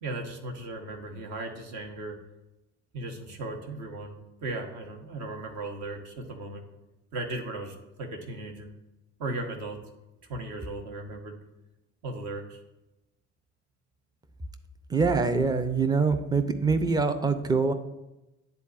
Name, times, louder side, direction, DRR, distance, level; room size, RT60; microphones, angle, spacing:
voice 1, 0.0-2.2 2.9-6.6 7.1-8.7 9.2-9.8 10.3-11.4 12.0-12.6, right 2 dB, 50° right, 2 dB, 1.2 m, -37 dB
voice 2, 14.9-17.7, right 4 dB, 10° right, 9 dB, 0.5 m, -24 dB
10.5 x 4.1 x 2.5 m, 0.97 s
figure-of-eight pair, 55°, 37 cm